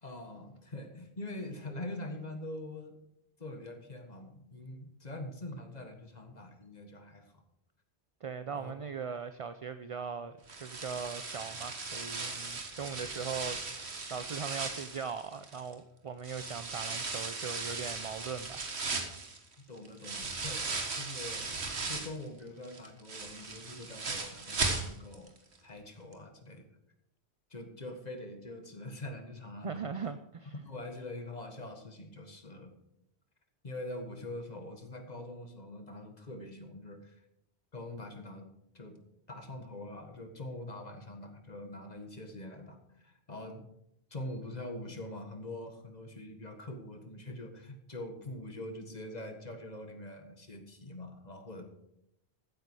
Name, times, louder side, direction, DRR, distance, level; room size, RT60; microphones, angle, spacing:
voice 1, 0.0-3.0 3.4-7.3 8.5-8.7 19.7-21.6 21.9-25.3 25.6-26.6 27.5-29.8 30.6-32.7 33.6-37.2 37.7-38.5 38.7-39.0 39.3-43.6 44.1-51.6, left 1 dB, 40° left, 6 dB, 1.8 m, -44 dB
voice 2, 8.2-18.7 29.6-30.5, right 6 dB, 45° right, 11 dB, 0.5 m, -40 dB
sound 1, 10.5-15.7 16.2-22.2 22.6-25.3 25.6-25.7 26.1-26.2, right 3 dB, 75° right, 1.9 m, -37 dB
14.5 x 9.6 x 4.8 m, 0.79 s
omnidirectional pair, 1.1 m